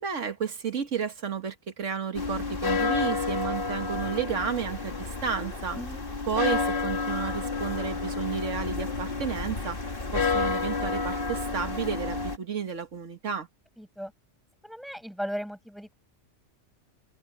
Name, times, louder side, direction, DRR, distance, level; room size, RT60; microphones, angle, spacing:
voice 1, 0.0-5.8 6.3-9.8 10.1-13.5, right 7 dB, 85° right, 1.8 m, -32 dB
sound 1, 2.1-12.4, left 4 dB, 45° left, 2.4 m, -30 dB
voice 2, 13.8-14.1 14.6-15.9, equal, ahead, 8.0 m, -36 dB
omnidirectional pair, 1.2 m